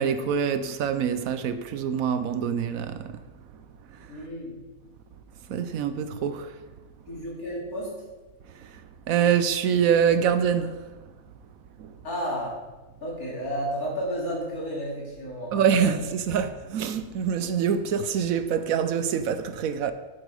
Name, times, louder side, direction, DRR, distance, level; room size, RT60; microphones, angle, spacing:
voice 1, 0.0-3.1 5.5-6.5 9.1-10.8 11.8-11.9 15.5-19.9, right 8 dB, 75° right, 1.1 m, -25 dB
voice 2, 4.1-4.6 7.1-8.0 12.0-12.5 13.0-15.9, equal, 80° left, 3.4 m, -32 dB
9.1 x 7.8 x 4.8 m
omnidirectional pair, 1.5 m